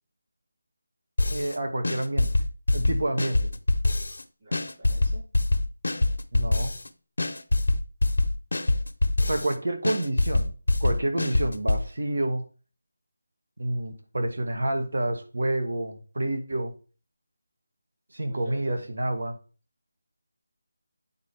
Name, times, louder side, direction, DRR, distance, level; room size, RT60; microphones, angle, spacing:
sound 1, 1.2-1.6 1.8-4.2 4.5-6.9 7.2-9.5 9.8-11.8, left 2 dB, 85° left, 0.8 m, -24 dB
voice 1, 1.3-2.3 2.7-3.5 6.3-6.7 9.2-10.5 10.8-12.4 13.6-16.7 18.1-19.4, right 1 dB, 70° right, 5 dB, 1.4 m, -28 dB
voice 2, 4.4-5.2 18.3-18.8, right 1 dB, 35° right, -4 dB, 3.5 m, -45 dB
9.0 x 4.2 x 3.4 m, 0.37 s
figure-of-eight pair, 170°, 0 cm